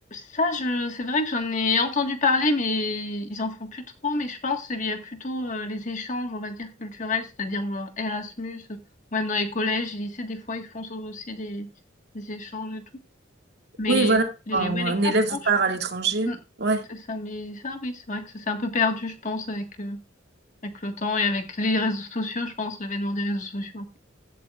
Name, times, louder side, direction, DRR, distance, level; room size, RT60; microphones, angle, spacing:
voice 1, 0.1-8.8 9.1-11.7 12.1-12.8 13.8-14.2 14.5-15.4 16.2-16.4 16.9-20.0 20.6-24.0, left 3 dB, 40° left, 1.6 m, -28 dB
voice 2, 13.9-16.8, right 3 dB, 55° right, 2.1 m, -23 dB
15.0 x 12.0 x 2.4 m
head